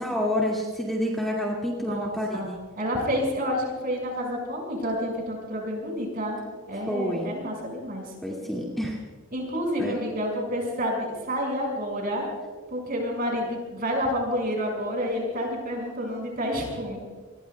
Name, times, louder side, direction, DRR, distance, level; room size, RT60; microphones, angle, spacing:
voice 1, 0.0-2.6 6.9-7.4 8.2-9.0 9.8-10.0, equal, ahead, -4 dB, 2.2 m, -28 dB
voice 2, 1.7-8.0 9.3-12.2 12.7-17.0, equal, 40° right, 0 dB, 5.8 m, -29 dB
28.5 x 21.0 x 2.3 m, 1.5 s
head